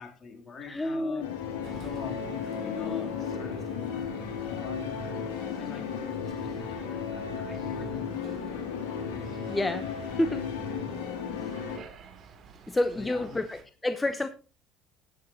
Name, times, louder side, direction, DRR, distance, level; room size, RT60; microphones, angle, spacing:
voice 1, 0.0-8.8 12.9-13.4, left 5 dB, 40° left, 3.3 m, -45 dB
voice 2, 0.7-1.2 9.5-9.9 10.2-10.4 12.7-14.3, left 2 dB, 15° left, 0.8 m, -29 dB
sound 1, 1.2-11.8, left 6 dB, 75° left, 2.7 m, -34 dB
sound 2, 1.6-13.6, right 5 dB, 50° right, 2.6 m, -51 dB
17.5 x 9.4 x 2.9 m
hypercardioid pair, 65°, 0 cm